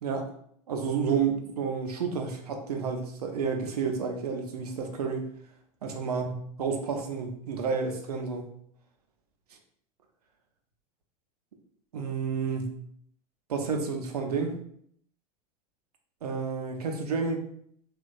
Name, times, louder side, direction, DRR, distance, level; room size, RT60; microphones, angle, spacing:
voice 1, 0.7-5.3 5.8-8.5 11.9-12.7 13.5-14.5 16.2-17.4, right 5 dB, 80° right, 4 dB, 0.5 m, -30 dB
2.9 x 2.2 x 2.5 m, 0.65 s
hypercardioid pair, 85°, 20 cm